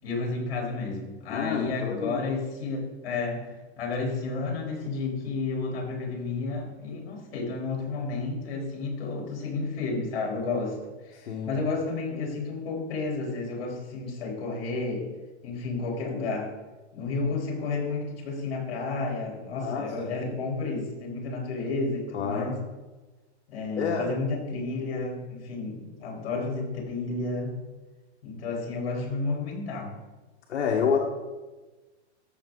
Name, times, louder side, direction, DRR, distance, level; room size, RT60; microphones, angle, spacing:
voice 1, 0.0-10.8 11.0-15.1 15.4-16.5 16.9-22.6 23.5-27.6 28.2-29.9, left 3 dB, 60° left, 0 dB, 3.9 m, -31 dB
voice 2, 1.3-2.2 11.3-11.5 19.6-19.8 22.1-22.5 23.8-24.1 30.5-31.0, left 6 dB, 85° left, 0 dB, 1.5 m, -27 dB
14.0 x 6.8 x 3.9 m, 1.2 s
hypercardioid pair, 160°, 34 cm